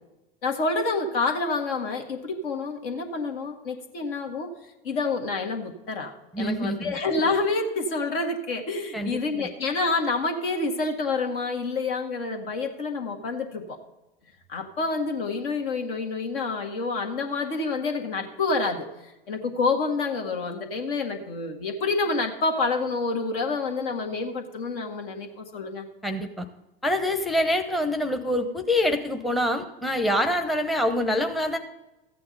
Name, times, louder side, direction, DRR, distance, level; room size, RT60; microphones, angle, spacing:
voice 1, 0.4-4.5 4.8-13.8 14.5-25.8, left 3 dB, 65° left, 3 dB, 1.8 m, -28 dB
voice 2, 6.3-6.9 8.9-9.2 26.0-26.5 26.8-31.6, left 1 dB, ahead, 5 dB, 0.8 m, -25 dB
14.0 x 8.7 x 3.9 m, 0.97 s
hypercardioid pair, 85°, 30 cm